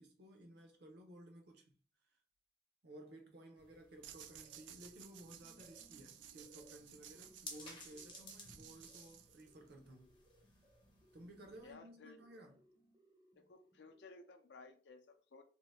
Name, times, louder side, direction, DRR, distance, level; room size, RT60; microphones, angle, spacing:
voice 1, 0.0-1.7 2.8-10.1 11.1-12.6, right 1 dB, 60° right, 0.7 m, -57 dB
sound 1, 3.6-11.7, left 3 dB, 25° left, 0.6 m, -58 dB
sound 2, 4.0-9.7, right 10 dB, 85° right, 0.3 m, -57 dB
sound 3, 4.1-14.6, right 1 dB, 25° right, 0.5 m, -69 dB
voice 2, 11.6-12.2 13.3-15.4, left 3 dB, 70° left, 0.5 m, -58 dB
2.7 x 2.1 x 3.2 m
head